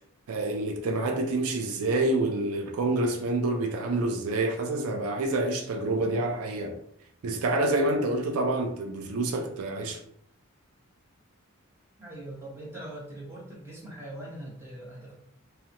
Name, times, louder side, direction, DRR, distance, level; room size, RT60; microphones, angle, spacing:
voice 1, 0.3-6.8 7.2-10.0, right 2 dB, 85° right, 0.4 m, -27 dB
voice 2, 12.0-15.2, right 1 dB, 10° right, 0.9 m, -41 dB
2.8 x 2.1 x 2.4 m
head